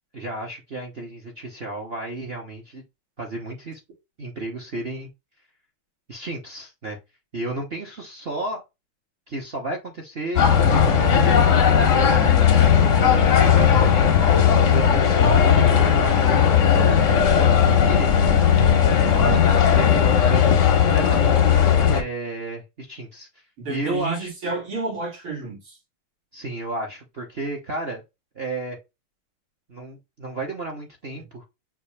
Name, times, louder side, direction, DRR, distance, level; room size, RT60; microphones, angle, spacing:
voice 1, 0.1-2.8 3.2-3.8 4.2-5.1 6.1-7.0 7.3-8.6 9.3-18.2 19.1-23.3 23.7-24.3 26.3-28.0 28.3-28.8 29.7-31.4, right 2 dB, 45° right, 0.8 m, -33 dB
sound 1, 10.3-22.0, left 8 dB, 60° left, 0.8 m, -17 dB
voice 2, 23.6-25.8 31.2-31.3, right 3 dB, 80° right, 3.5 m, -31 dB
5.8 x 2.7 x 3.2 m
omnidirectional pair, 2.3 m